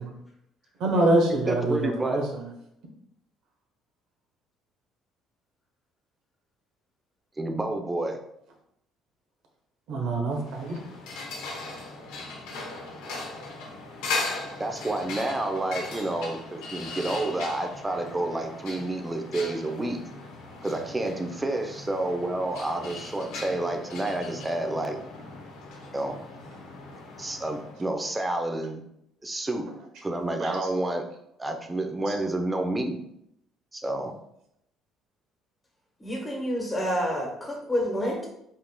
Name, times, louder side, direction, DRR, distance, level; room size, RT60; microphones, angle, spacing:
voice 1, 0.8-2.2 9.9-10.8 30.4-30.5, right 2 dB, 75° right, 1 dB, 1.0 m, -25 dB
voice 2, 1.5-2.2 7.4-8.2 14.6-20.0 20.6-25.0 25.9-26.2 27.2-28.8 29.2-29.7 30.0-31.1 31.4-33.0 33.7-34.1, right 2 dB, 15° right, 4 dB, 0.6 m, -29 dB
sound 1, 10.4-27.8, left 3 dB, 85° left, 0.8 m, -38 dB
voice 3, 36.0-38.3, equal, 20° left, -2 dB, 1.3 m, -28 dB
5.1 x 2.9 x 2.2 m, 0.77 s
supercardioid pair, 85°, 0 cm